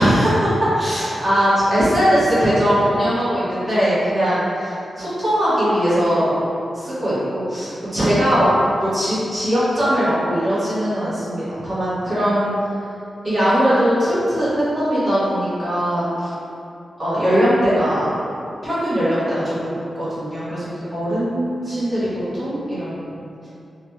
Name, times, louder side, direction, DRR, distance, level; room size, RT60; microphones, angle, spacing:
voice 1, 0.0-6.3 6.7-8.5 8.8-12.5 13.2-16.3 17.0-18.1 18.6-19.7 19.9-23.5, equal, 30° right, -13 dB, 1.5 m, -20 dB
3.8 x 2.3 x 3.0 m, 2.6 s
wide cardioid pair, 125°, 0 cm